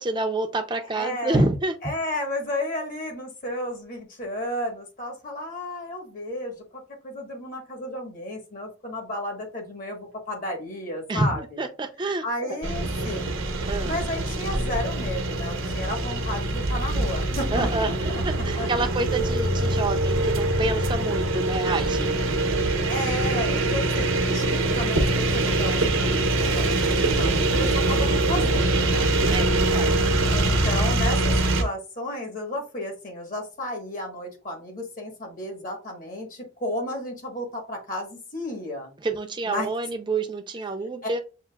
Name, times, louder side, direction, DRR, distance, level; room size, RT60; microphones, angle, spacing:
voice 1, 0.0-1.7 11.1-12.6 13.7-14.0 17.5-22.2 29.3-30.2 39.0-41.2, right 2 dB, 25° right, 0.5 m, -28 dB
voice 2, 0.8-1.4 1.8-11.6 12.2-13.3 13.8-18.2 18.6-18.7 22.9-29.1 30.3-38.9 39.4-39.7 41.0-41.2, left 1 dB, 45° left, 1.3 m, -33 dB
sound 1, 12.6-31.6, right 2 dB, 90° right, 0.8 m, -24 dB
6.8 x 2.5 x 2.3 m
head